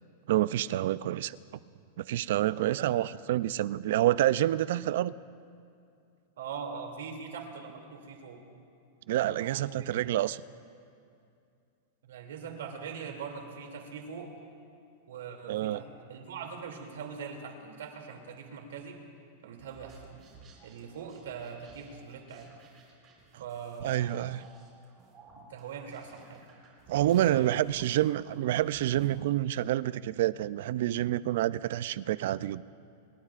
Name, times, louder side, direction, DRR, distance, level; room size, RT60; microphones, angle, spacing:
voice 1, 0.3-1.4 2.0-5.1 9.1-10.4 15.5-15.8 23.8-24.5 26.9-32.6, right 13 dB, 65° right, 18 dB, 0.4 m, -28 dB
voice 2, 2.5-3.0 6.4-8.4 9.2-9.9 12.0-14.5 15.1-19.0 19.4-20.1 20.6-22.5 23.4-24.3 25.3-26.4 27.1-27.5, right 6 dB, 85° right, 2 dB, 2.7 m, -42 dB
sound 1, 19.6-29.2, right 3 dB, 25° right, 4.1 m, -56 dB
26.5 x 21.0 x 2.5 m, 2.5 s
supercardioid pair, 155°, 0 cm